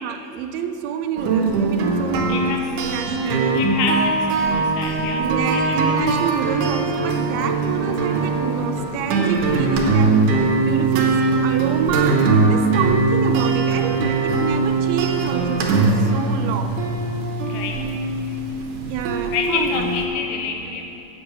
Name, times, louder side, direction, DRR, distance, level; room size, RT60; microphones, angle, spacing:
voice 1, 0.0-3.7 5.2-10.3 10.7-16.8 18.9-19.9, right 7 dB, 90° right, 8 dB, 2.4 m, -28 dB
sound 1, 1.2-20.1, right 3 dB, 70° right, 2.1 m, -21 dB
voice 2, 2.3-6.1 17.5-17.9 19.3-20.8, left 5 dB, 85° left, 3 dB, 2.7 m, -29 dB
8.1 x 6.2 x 6.6 m, 2.9 s
omnidirectional pair, 4.2 m